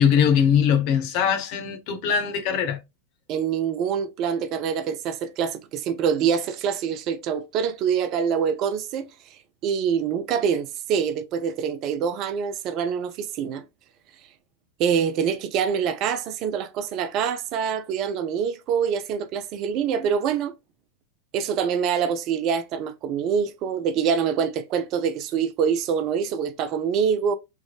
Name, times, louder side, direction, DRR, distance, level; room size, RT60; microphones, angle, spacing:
voice 1, 0.0-2.8, left 8 dB, 45° left, 0.9 m, -21 dB
voice 2, 3.3-9.1 9.6-13.6 14.8-20.5 21.3-27.4, right 7 dB, 40° right, 0.4 m, -25 dB
3.6 x 3.0 x 2.3 m
figure-of-eight pair, 90°, 0 cm